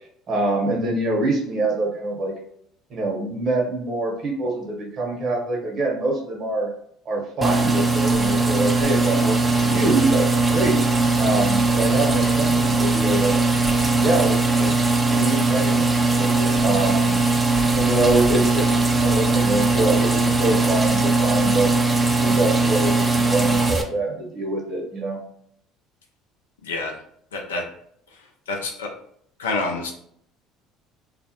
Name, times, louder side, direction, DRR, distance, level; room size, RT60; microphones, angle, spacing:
voice 1, 0.3-2.3 2.9-6.7 7.0-10.8 11.2-13.3 14.0-14.7 15.1-15.9 16.1-17.1 17.8-21.7 22.2-25.2, right 2 dB, 50° right, -1 dB, 1.0 m, -25 dB
sound 1, 7.4-23.8, right 3 dB, 20° right, 0.4 m, -20 dB
voice 2, 26.6-27.0 27.3-27.6 28.1-28.9 29.4-29.9, left 3 dB, 90° left, 1 dB, 0.5 m, -28 dB
2.4 x 2.1 x 2.8 m, 0.66 s
hypercardioid pair, 70°, 0 cm